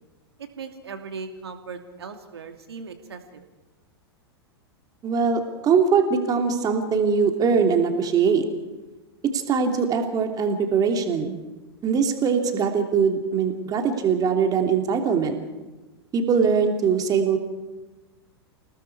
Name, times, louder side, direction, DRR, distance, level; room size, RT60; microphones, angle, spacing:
voice 1, 0.4-3.4, right 5 dB, 75° right, 6 dB, 2.6 m, -38 dB
voice 2, 5.0-8.5 9.3-11.4 11.8-15.4 16.1-17.4, right 6 dB, 30° right, 4 dB, 3.0 m, -22 dB
29.5 x 19.0 x 4.8 m, 1.2 s
figure-of-eight pair, 100°, 14 cm